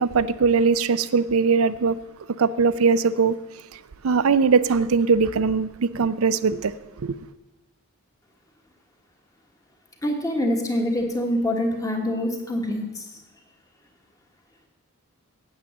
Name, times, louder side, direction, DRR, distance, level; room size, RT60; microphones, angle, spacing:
voice 1, 0.0-2.0 2.4-3.4 3.7-7.1, right 5 dB, 70° right, 0.5 m, -21 dB
voice 2, 10.0-13.1, left 1 dB, 15° left, 1.4 m, -25 dB
8.7 x 8.3 x 7.2 m
head